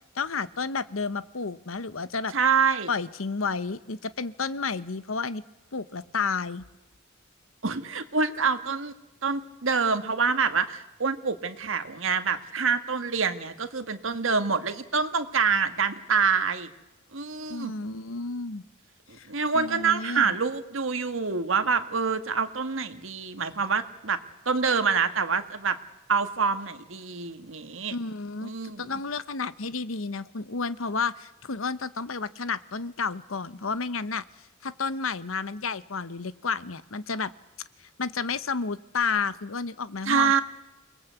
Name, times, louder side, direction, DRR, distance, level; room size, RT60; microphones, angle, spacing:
voice 1, 0.1-2.3 2.9-5.4 5.7-6.6 17.5-18.6 19.2-19.3 19.5-20.4 27.9-28.5 28.8-34.2 34.6-37.3 38.0-40.4, left 4 dB, 80° left, 15 dB, 1.0 m, -31 dB
voice 2, 2.3-2.9 7.6-8.9 9.2-16.7 17.1-17.7 19.1-24.2 24.4-25.8 26.1-27.9 28.4-28.9 40.0-40.4, right 5 dB, 70° right, 9 dB, 1.7 m, -26 dB
28.5 x 20.5 x 8.2 m, 1.0 s
head